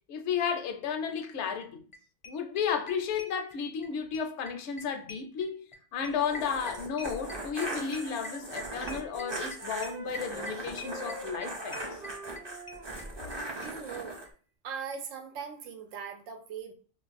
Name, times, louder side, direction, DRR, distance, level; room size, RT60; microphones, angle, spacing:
voice 1, 0.1-1.8 2.3-5.7 5.9-12.0, left 7 dB, 70° left, 0.8 m, -33 dB
sound 1, 1.6-1.7 1.9-2.0 2.2-3.9 4.1-13.4 13.6-13.7 13.9-14.0 14.2-14.3, left 2 dB, 35° left, 0.5 m, -44 dB
sound 2, 6.1-14.3, right 2 dB, 30° right, 0.5 m, -39 dB
Wind instrument woodwind instrument, 7.7-10.6 10.8-14.1, right 3 dB, 50° right, 1.0 m, -46 dB
voice 2, 13.6-14.2 14.6-16.7, right 6 dB, 80° right, 1.0 m, -40 dB
2.5 x 2.3 x 3.9 m
omnidirectional pair, 1.3 m